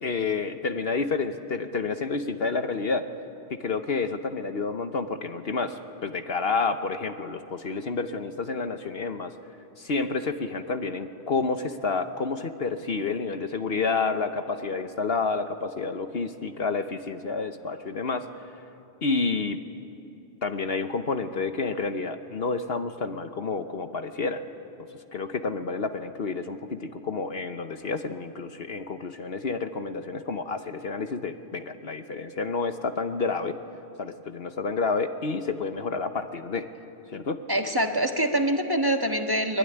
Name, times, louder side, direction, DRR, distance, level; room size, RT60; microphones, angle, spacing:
voice 1, 0.0-3.1 3.5-9.3 9.8-18.5 19.0-19.6 20.4-24.5 24.8-33.6 34.0-36.7 37.1-37.4, left 4 dB, 55° left, 8 dB, 1.2 m, -29 dB
voice 2, 37.5-39.6, right 1 dB, 20° right, 4 dB, 1.5 m, -24 dB
23.5 x 22.0 x 9.9 m, 2.7 s
omnidirectional pair, 1.2 m